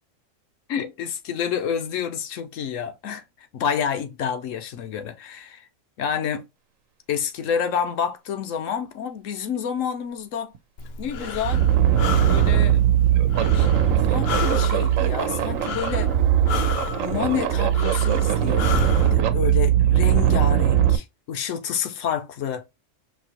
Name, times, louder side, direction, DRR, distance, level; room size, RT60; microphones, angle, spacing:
voice 1, 0.7-3.2 3.5-5.7 6.0-6.4 7.1-10.5 11.0-11.7 12.2-12.8 13.5-13.7 14.0-16.1 17.0-22.6, left 8 dB, 75° left, 1.1 m, -29 dB
sound 1, 10.6-10.7 11.1-21.0, right 10 dB, 85° right, 1.1 m, -20 dB
Breathing, 10.8-19.1, left 7 dB, 60° left, 0.8 m, -32 dB
5.3 x 2.7 x 2.9 m
omnidirectional pair, 1.4 m